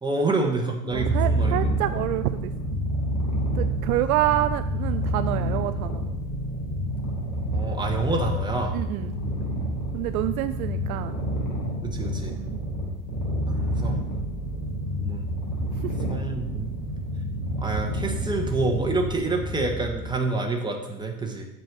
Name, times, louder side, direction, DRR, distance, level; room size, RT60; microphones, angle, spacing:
voice 1, 0.0-1.7 4.3-4.4 7.5-8.8 11.8-12.4 13.5-14.0 15.0-15.3 16.1-16.7 17.6-21.5, right 3 dB, 10° right, 2 dB, 1.5 m, -28 dB
Purr, 0.9-20.2, equal, 35° left, 3.4 m, -28 dB
voice 2, 0.9-2.5 3.5-6.0 8.7-9.1 9.9-11.2 12.3-12.6 15.8-15.9, right 14 dB, 60° right, 11 dB, 0.5 m, -27 dB
7.5 x 4.6 x 6.9 m, 0.92 s
hypercardioid pair, 90°, 50 cm